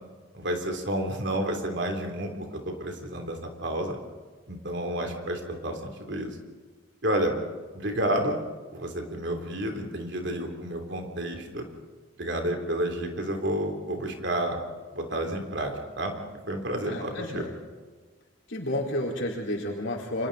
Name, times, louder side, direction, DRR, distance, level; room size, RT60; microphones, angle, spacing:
voice 1, 0.3-4.0 4.5-6.4 7.0-7.4 7.7-8.4 8.7-11.6 12.2-14.6 14.9-16.1 16.5-17.5, right 1 dB, 60° right, 3 dB, 3.2 m, -30 dB
voice 2, 16.8-17.5 18.5-20.3, left 1 dB, 70° left, -3 dB, 4.4 m, -31 dB
29.5 x 25.0 x 4.1 m, 1.4 s
head